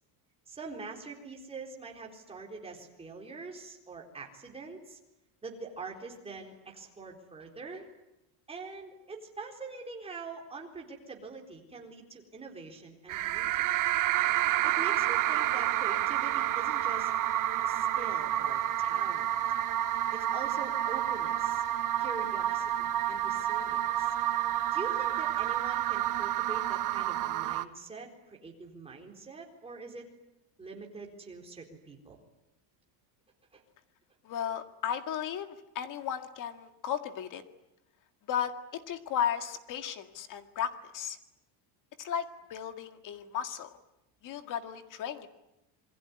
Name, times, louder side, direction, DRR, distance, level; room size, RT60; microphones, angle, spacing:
voice 1, 0.5-5.0 5.4-7.9 8.5-13.7 14.6-17.1 17.7-19.3 20.1-21.6 22.0-24.1 24.7-30.1 30.6-32.2 33.5-33.6, right 3 dB, 10° right, 0 dB, 4.1 m, -44 dB
sound 1, 13.1-27.6, right 13 dB, 40° right, 1.0 m, -29 dB
voice 2, 34.2-37.4 38.3-41.2 42.0-43.7 44.2-45.3, left 9 dB, 40° left, 8 dB, 2.0 m, -35 dB
27.5 x 22.5 x 9.7 m, 0.92 s
cardioid pair, 175°, 48 cm